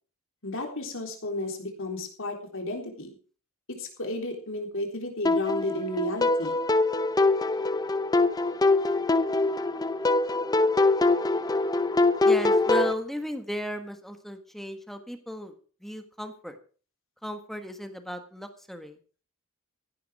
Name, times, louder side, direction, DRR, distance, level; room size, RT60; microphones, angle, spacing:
voice 1, 0.4-3.1 3.7-6.6, left 1 dB, 65° left, 3 dB, 3.7 m, -32 dB
sound 1, 5.3-12.9, left 2 dB, 20° left, 0.6 m, -24 dB
voice 2, 12.2-15.5 15.8-16.6 17.2-19.0, equal, ahead, 7 dB, 1.5 m, -35 dB
15.5 x 10.5 x 4.9 m, 0.39 s
head